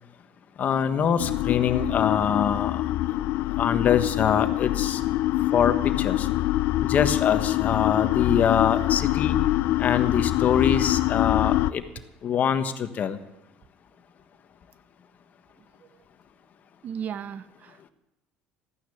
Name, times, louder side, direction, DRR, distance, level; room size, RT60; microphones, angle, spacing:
voice 1, 0.6-2.8 3.6-5.0 5.5-6.3 6.8-9.4 9.8-11.8 12.2-13.2, left 8 dB, 45° left, 1.4 m, -24 dB
sound 1, 1.2-11.7, left 15 dB, 65° left, 0.5 m, -25 dB
voice 2, 16.8-17.9, right 8 dB, 45° right, 0.7 m, -35 dB
14.0 x 9.6 x 8.5 m
cardioid pair, 115°, 4 cm